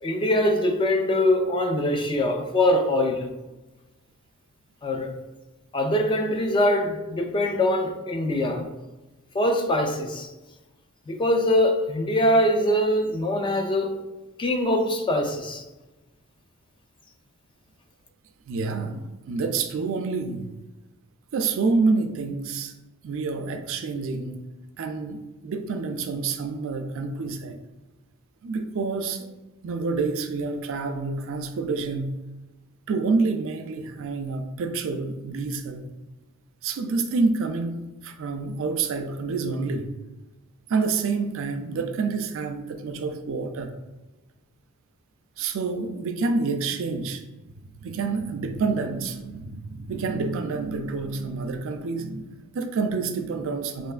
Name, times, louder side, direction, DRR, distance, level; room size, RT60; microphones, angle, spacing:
voice 1, 0.0-3.3 4.8-5.1 5.7-8.7 9.3-10.3 11.1-14.0 14.4-15.6, left 1 dB, 20° left, 0.3 m, -23 dB
voice 2, 18.5-20.5 21.3-22.7 23.0-24.4 24.8-27.6 28.4-29.3 29.6-32.2 32.9-35.9 36.6-39.9 40.7-43.8 45.4-47.2 47.7-53.9, right 4 dB, 65° right, 0.4 m, -28 dB
4.2 x 3.2 x 2.3 m
head